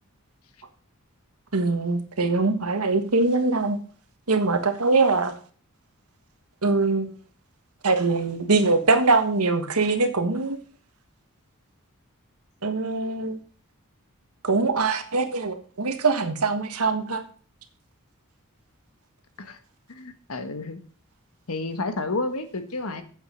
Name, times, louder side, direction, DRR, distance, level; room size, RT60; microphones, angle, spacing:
voice 1, 1.5-3.8 4.3-5.3 6.6-7.1 7.8-10.6 12.6-13.4 14.4-17.2, right 3 dB, 85° right, 8 dB, 1.5 m, -22 dB
voice 2, 19.9-20.8 21.5-23.0, left 2 dB, 80° left, 9 dB, 1.4 m, -30 dB
9.0 x 7.5 x 5.1 m, 0.43 s
head